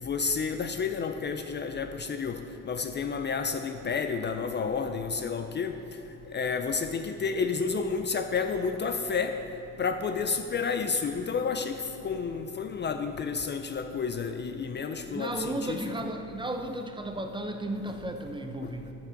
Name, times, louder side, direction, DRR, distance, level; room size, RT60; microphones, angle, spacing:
voice 1, 0.0-5.8 6.3-9.3 9.8-16.1 18.6-18.7, left 5 dB, 35° left, 8 dB, 0.5 m, -30 dB
voice 2, 15.1-18.9, right 1 dB, 15° right, 5 dB, 0.7 m, -34 dB
9.0 x 5.9 x 5.7 m, 2.8 s
cardioid pair, 90°, 30 cm